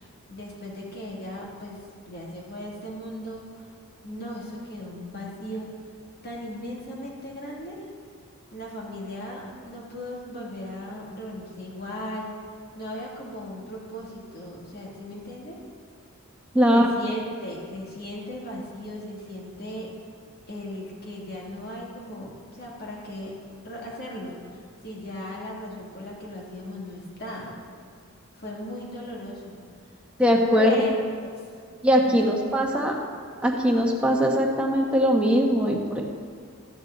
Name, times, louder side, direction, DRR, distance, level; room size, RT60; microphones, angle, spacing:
voice 1, 0.0-3.7 4.0-5.7 6.2-7.9 8.5-12.4 12.8-15.6 16.7-19.9 20.5-23.4 23.6-27.6 28.4-29.6 30.6-30.9 31.2-31.3 32.0-32.6, equal, 45° left, -3 dB, 2.5 m, -37 dB
voice 2, 16.5-16.9 30.2-30.8 31.8-32.9 33.4-36.0, equal, 5° right, -1 dB, 1.2 m, -21 dB
13.0 x 10.0 x 4.0 m, 2.2 s
head